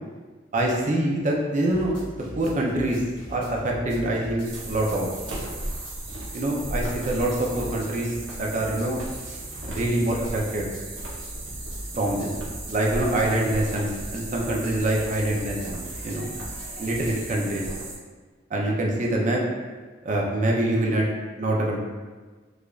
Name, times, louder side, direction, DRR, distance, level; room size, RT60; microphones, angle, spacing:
voice 1, 0.5-1.9 2.4-3.0 3.3-5.1 6.3-9.0 9.2-9.4 9.7-10.7 11.9-12.3 12.7-16.3 16.8-17.7 18.5-19.4 20.0-21.0 21.4-21.8, right 1 dB, 40° right, -1 dB, 0.5 m, -25 dB
sound 1, 1.7-17.3, equal, 70° left, 1.5 m, -42 dB
sound 2, 4.4-18.0, right 2 dB, 70° right, 0.8 m, -36 dB
4.9 x 2.4 x 2.4 m, 1.4 s
head